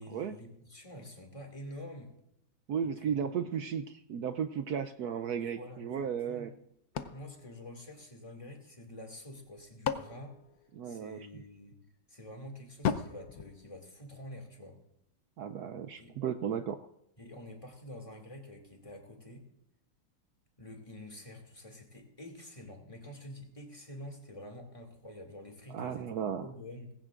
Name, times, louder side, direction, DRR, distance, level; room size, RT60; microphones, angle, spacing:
voice 1, 0.0-2.1 2.8-3.6 5.3-6.6 7.1-10.4 10.8-11.8 12.1-14.8 16.0-16.1 17.2-19.5 20.6-26.1 26.4-26.9, left 1 dB, 15° left, 2 dB, 2.2 m, -48 dB
voice 2, 2.7-6.5 10.7-11.2 15.4-16.8 25.7-26.5, right 8 dB, 75° right, 9 dB, 0.9 m, -35 dB
sound 1, 6.9-8.5 9.3-11.3 12.8-14.4, left 7 dB, 65° left, 1.1 m, -38 dB
19.5 x 16.5 x 2.5 m, 0.78 s
omnidirectional pair, 2.2 m